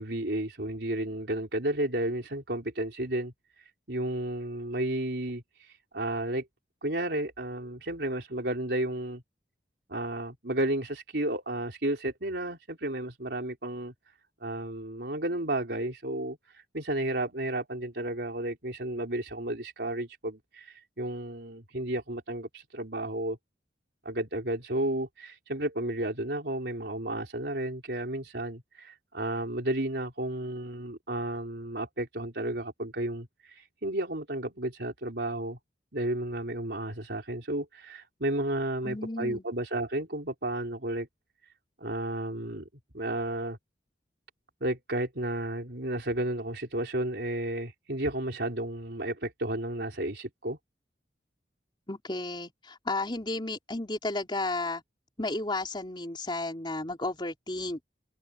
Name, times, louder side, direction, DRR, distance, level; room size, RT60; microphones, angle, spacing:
voice 1, 0.0-3.3 3.9-5.4 5.9-6.5 6.8-9.2 9.9-13.9 14.4-16.4 16.7-23.4 24.0-35.6 35.9-41.1 41.8-42.7 42.9-43.6 44.6-50.6, right 1 dB, 65° right, 4.3 m, -32 dB
voice 2, 38.8-39.4 51.9-54.8 55.2-57.8, left 2 dB, 25° left, 4.2 m, -33 dB
head